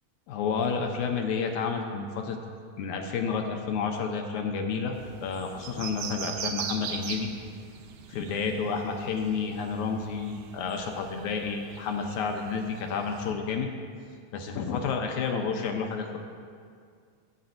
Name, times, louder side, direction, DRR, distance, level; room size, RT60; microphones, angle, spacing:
voice 1, 0.3-2.4 2.8-5.0 5.2-7.3 8.1-13.7 14.3-16.2, left 5 dB, 75° left, 3 dB, 1.9 m, -30 dB
sound 1, 4.9-13.3, right 7 dB, 85° right, 2.3 m, -41 dB
18.5 x 8.6 x 2.6 m, 2.1 s
omnidirectional pair, 3.8 m